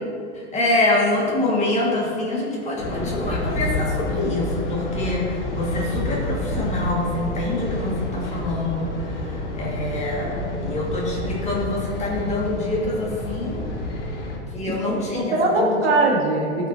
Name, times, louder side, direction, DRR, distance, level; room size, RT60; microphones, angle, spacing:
voice 1, 0.3-13.6 14.5-15.7, left 2 dB, 20° left, -3 dB, 1.7 m, -25 dB
sound 1, 2.8-14.4, left 1 dB, 80° left, 1.8 m, -29 dB
voice 2, 14.7-16.7, right 2 dB, 60° right, -1 dB, 1.8 m, -21 dB
13.5 x 5.3 x 2.7 m, 2.3 s
hypercardioid pair, 115°, 36 cm